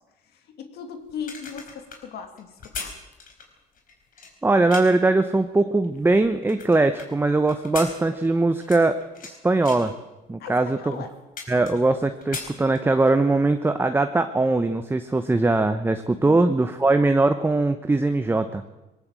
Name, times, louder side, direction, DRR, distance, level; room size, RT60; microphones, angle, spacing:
voice 1, 0.5-2.9 10.4-11.1 16.3-16.4, left 7 dB, 70° left, 7 dB, 2.4 m, -37 dB
sound 1, 1.1-5.1 5.7-7.1 7.5-9.3 9.6-9.9 10.5-10.6 10.9-12.0 12.2-13.2 13.6-13.7, left 5 dB, 55° left, 4.5 m, -38 dB
voice 2, 4.4-9.9 10.3-11.0 11.5-18.6, right 2 dB, 15° right, 8 dB, 1.0 m, -21 dB
20.0 x 17.5 x 7.6 m, 1.0 s
cardioid pair, 110°, 17 cm